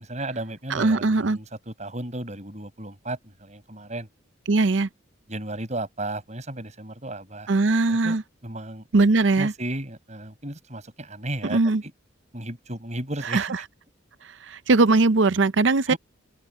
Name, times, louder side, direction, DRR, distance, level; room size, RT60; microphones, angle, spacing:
voice 1, 0.1-4.1 5.3-7.5 7.9-8.2 8.4-8.8 9.4-11.9 12.3-13.5 15.9-16.0, right 1 dB, 35° right, 7.9 m, -34 dB
voice 2, 0.7-1.4 4.5-4.9 7.5-8.2 8.9-9.5 11.5-11.8 13.3-13.4 14.5-15.9, right 3 dB, 65° right, 0.7 m, -20 dB
open air
head